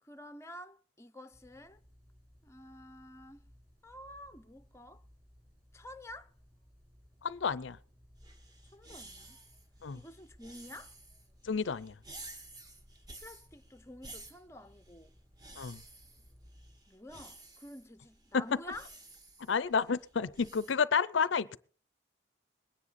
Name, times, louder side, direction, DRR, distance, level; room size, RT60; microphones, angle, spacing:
voice 1, 0.0-1.8 2.4-3.4 3.8-5.0 5.7-6.3 8.7-9.4 9.9-10.9 13.2-15.1 16.9-18.9, left 1 dB, 15° left, 0.7 m, -49 dB
sound 1, 1.3-16.8, equal, 45° right, 5.5 m, -62 dB
voice 2, 7.2-7.8 9.8-10.0 11.4-11.9 15.6-15.8 18.3-18.4 19.5-21.6, left 5 dB, 70° left, 0.5 m, -30 dB
sound 2, 8.1-20.7, right 2 dB, 20° right, 1.7 m, -53 dB
21.5 x 9.9 x 4.1 m
head